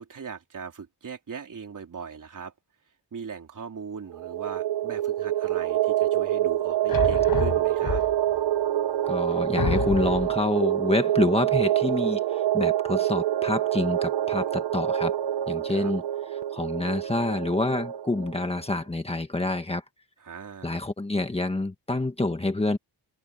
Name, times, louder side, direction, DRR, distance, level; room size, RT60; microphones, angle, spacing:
voice 1, 0.0-2.5 3.1-8.0 15.7-15.9 20.2-20.8, right 6 dB, 50° right, 3.9 m, -39 dB
sound 1, 4.1-18.5, right 12 dB, 80° right, 1.1 m, -26 dB
sound 2, 6.9-8.4 9.0-9.1 9.6-10.4, left 7 dB, 55° left, 5.1 m, -29 dB
voice 2, 9.1-15.2 15.5-16.0 16.5-19.8 20.6-22.8, left 2 dB, 15° left, 1.5 m, -27 dB
wide cardioid pair, 155°, 41 cm